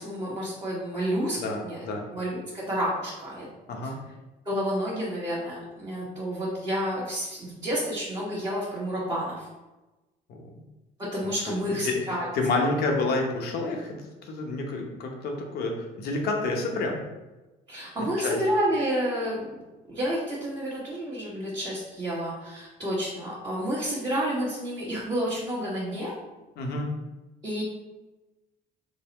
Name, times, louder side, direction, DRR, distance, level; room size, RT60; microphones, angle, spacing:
voice 1, 0.0-1.8 2.1-3.5 4.4-9.5 11.0-12.3 17.7-19.4 19.9-26.1 27.4-27.6, equal, 25° right, -8 dB, 1.1 m, -30 dB
voice 2, 1.4-2.1 3.7-4.0 10.3-10.4 11.2-11.5 11.8-12.0 12.3-14.0 14.3-17.0 18.2-18.4 26.6-26.9, left 3 dB, 70° left, 1 dB, 0.8 m, -29 dB
3.9 x 2.1 x 4.0 m, 1.1 s
cardioid pair, 110°, 17 cm